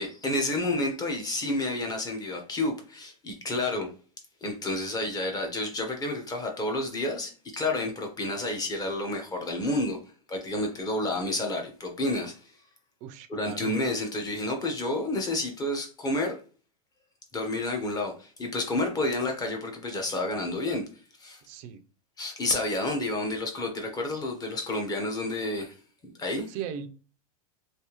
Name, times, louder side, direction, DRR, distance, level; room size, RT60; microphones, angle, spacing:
voice 1, 0.0-3.9 4.4-10.0 10.3-12.5 13.3-16.4 17.3-20.8 21.2-21.4 22.2-25.7 26.2-26.5, left 2 dB, 20° left, 0.9 m, -30 dB
voice 2, 13.0-13.7 21.4-21.8 26.5-26.9, right 9 dB, 45° right, 0.5 m, -39 dB
3.3 x 2.8 x 3.0 m
supercardioid pair, 130°, 20 cm